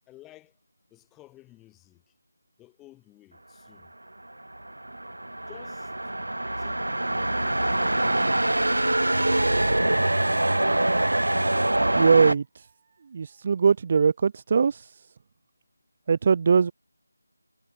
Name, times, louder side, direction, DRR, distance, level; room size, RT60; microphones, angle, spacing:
voice 1, 0.1-0.5 0.9-2.0 2.6-3.9 5.4-5.9, left 16 dB, 5° left, 6.8 m, -53 dB
sound 1, 4.4-12.3, right 1 dB, 75° right, 1.7 m, -24 dB
voice 2, 12.0-12.7 13.1-15.0 16.1-16.7, right 5 dB, 30° right, 0.5 m, -21 dB
figure-of-eight pair, 165°, 0 cm